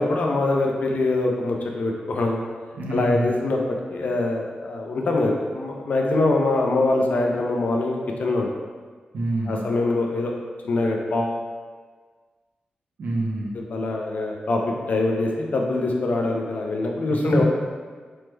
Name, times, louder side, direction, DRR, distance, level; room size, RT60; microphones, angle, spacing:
voice 1, 0.0-2.4 2.9-3.6 3.9-8.5 9.5-10.3 10.6-11.4 13.7-17.4, left 2 dB, 50° left, 0 dB, 0.4 m, -23 dB
voice 2, 2.8-3.3 9.1-9.7 13.0-13.6 17.1-17.4, right 1 dB, 65° right, -1 dB, 0.5 m, -26 dB
3.1 x 2.1 x 3.1 m, 1.5 s
wide cardioid pair, 180°, 3 cm